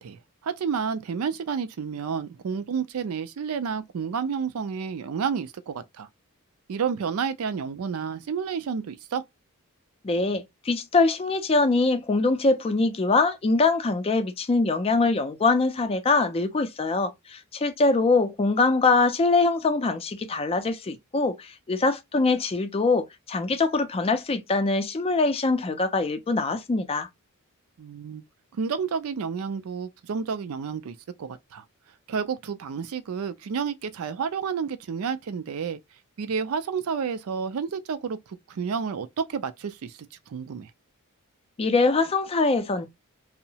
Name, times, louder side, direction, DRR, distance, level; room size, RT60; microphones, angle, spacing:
voice 1, 0.0-6.1 6.7-9.2 27.8-28.2 28.5-31.6 32.1-35.8 36.2-38.2 38.5-40.0 40.3-40.7, right 6 dB, 65° right, 0.4 m, -30 dB
voice 2, 10.0-27.1 41.6-42.9, left 3 dB, 25° left, 0.4 m, -23 dB
2.7 x 2.0 x 2.7 m
head